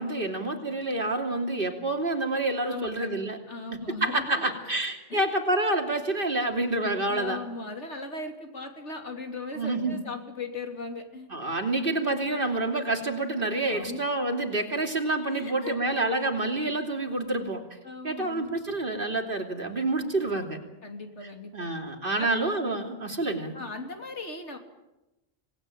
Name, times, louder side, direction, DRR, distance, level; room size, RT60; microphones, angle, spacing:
voice 1, 0.0-3.4 4.0-7.4 9.5-10.0 11.3-17.6 18.0-20.6 21.5-23.5, right 2 dB, 50° right, 3 dB, 3.1 m, -28 dB
voice 2, 2.6-3.1 3.5-4.5 5.1-5.3 7.1-11.3 13.7-14.0 15.3-15.8 17.8-18.6 20.8-21.5 22.2-22.4 23.5-24.6, left 3 dB, 85° left, 4 dB, 3.3 m, -38 dB
26.0 x 19.0 x 9.1 m, 0.99 s
omnidirectional pair, 1.2 m